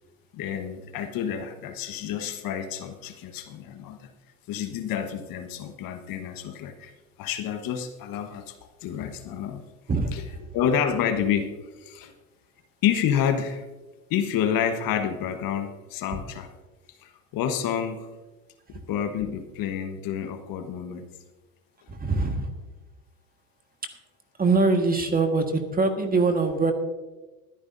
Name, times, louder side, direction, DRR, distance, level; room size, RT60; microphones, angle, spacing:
voice 1, 0.3-4.1 4.5-6.9 7.2-9.6 10.1-10.2 10.5-12.1 12.8-13.6 14.1-16.5 17.0-18.1 18.9-21.1, left 8 dB, 50° left, 8 dB, 1.3 m, -29 dB
voice 2, 21.9-22.5 24.4-26.7, right 3 dB, 20° right, 5 dB, 1.6 m, -23 dB
21.0 x 10.0 x 2.7 m, 1.2 s
hypercardioid pair, 80°, 43 cm